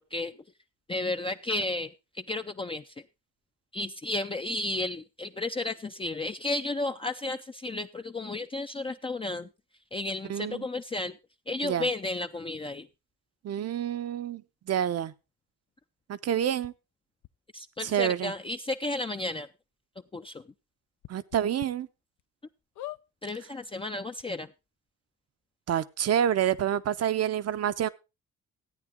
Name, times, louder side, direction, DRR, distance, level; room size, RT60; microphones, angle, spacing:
voice 1, 0.9-2.9 3.7-9.5 9.9-11.2 11.5-12.9 17.5-19.5 20.1-20.4 23.2-24.5, left 2 dB, 20° left, 0.5 m, -33 dB
voice 2, 10.3-10.6 11.6-11.9 13.4-14.4 14.7-15.1 16.1-16.7 17.8-18.3 21.1-21.9 25.7-27.9, right 10 dB, 55° right, 0.8 m, -28 dB
sound 1, 16.6-16.7 17.2-17.3 18.3-18.4 18.7-18.8 19.2-19.3 21.0-21.7 22.2-22.3 22.7-23.0 23.9-24.0 24.2-24.3, left 16 dB, 75° left, 0.6 m, -42 dB
14.0 x 8.9 x 3.6 m
cardioid pair, 90°, 30 cm